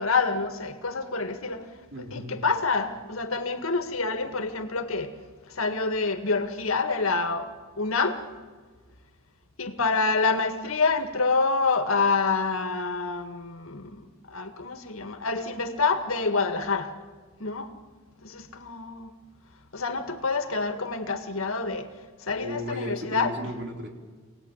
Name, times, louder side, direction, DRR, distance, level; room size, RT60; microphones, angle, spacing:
voice 1, 0.0-1.7 2.1-5.1 5.5-7.5 7.8-8.2 9.6-16.9 17.4-17.7 18.2-19.1 19.7-21.9 22.2-23.3, left 4 dB, 75° left, 7 dB, 1.9 m, -27 dB
voice 2, 1.9-2.3 22.4-23.9, left 1 dB, 55° right, 2 dB, 3.8 m, -35 dB
26.5 x 18.5 x 9.1 m, 1.4 s
head